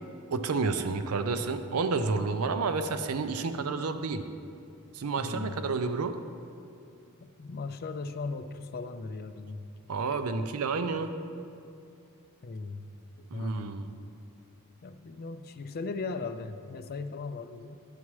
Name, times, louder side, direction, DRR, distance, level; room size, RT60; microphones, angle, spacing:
voice 1, 0.3-4.2 4.9-6.2 9.9-11.1 13.3-13.9, right 4 dB, 80° right, 9 dB, 0.5 m, -30 dB
voice 2, 5.2-5.6 7.2-9.7 12.4-13.8 14.8-17.8, left 3 dB, 45° left, 10 dB, 0.4 m, -38 dB
11.0 x 7.2 x 3.2 m, 2.5 s
head